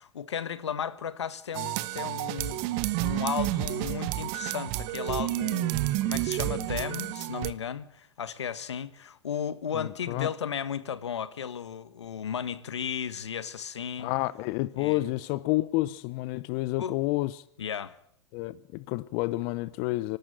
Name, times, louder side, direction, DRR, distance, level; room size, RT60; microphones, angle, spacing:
voice 1, 0.0-14.1 14.8-15.1 16.8-17.0 17.6-18.0, left 8 dB, 90° left, 1.4 m, -35 dB
sound 1, 1.5-7.5, right 16 dB, 55° right, 1.1 m, -30 dB
voice 2, 9.7-10.3 14.0-17.3 18.3-20.2, left 19 dB, 50° left, 0.7 m, -29 dB
25.0 x 12.0 x 9.2 m
hypercardioid pair, 105°, 14 cm